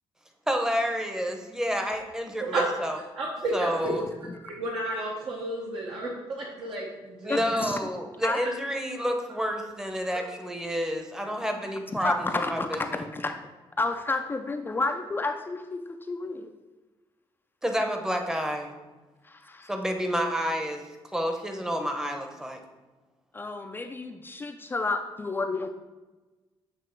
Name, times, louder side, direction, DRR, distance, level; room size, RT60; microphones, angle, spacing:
voice 1, 0.5-3.0 3.5-4.0 7.2-13.1 17.6-18.7 19.7-20.8 21.1-22.6, equal, 5° right, 4 dB, 0.8 m, -29 dB
voice 2, 3.1-3.9 4.4-7.6 8.4-8.5, right 2 dB, 65° right, -3 dB, 1.0 m, -32 dB
voice 3, 7.3-7.8 8.2-8.4 11.9-13.4 13.8-16.5 19.2-19.7 23.3-25.7, left 3 dB, 20° left, 6 dB, 0.4 m, -31 dB
7.9 x 2.9 x 4.4 m, 1.2 s
cardioid pair, 110°, 10 cm